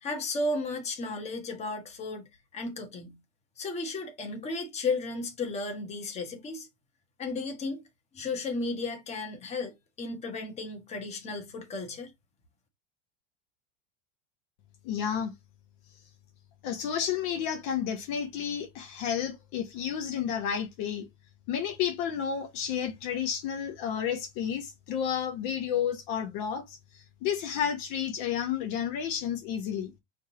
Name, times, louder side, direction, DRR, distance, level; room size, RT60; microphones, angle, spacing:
voice 1, 0.0-2.2 2.5-3.2 3.6-6.7 7.2-7.8 8.1-12.1, left 3 dB, 20° left, 1.1 m, -34 dB
voice 2, 14.8-15.3 16.6-21.1 21.5-29.9, left 8 dB, 55° left, 1.0 m, -31 dB
4.9 x 3.6 x 2.8 m
supercardioid pair, 165°, 35 cm